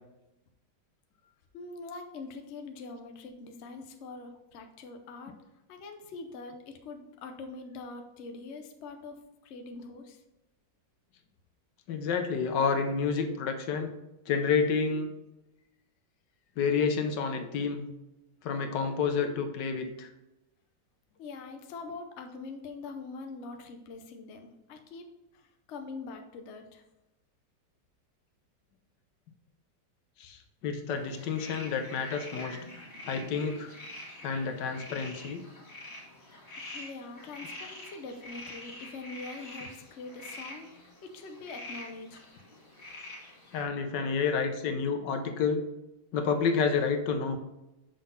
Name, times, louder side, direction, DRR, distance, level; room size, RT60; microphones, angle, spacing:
voice 1, 1.2-5.3 5.7-10.2 21.2-26.8 36.6-42.3, left 3 dB, 55° left, 5 dB, 0.8 m, -44 dB
voice 2, 11.9-13.9 14.3-15.1 16.6-17.9 18.4-20.1 30.2-32.6 33.0-33.7 34.2-35.4 43.5-45.6 46.1-47.4, left 5 dB, 75° left, 7 dB, 1.3 m, -29 dB
sound 1, 30.9-43.6, left 1 dB, 35° left, 1.7 m, -46 dB
6.3 x 4.0 x 5.5 m, 0.96 s
omnidirectional pair, 1.9 m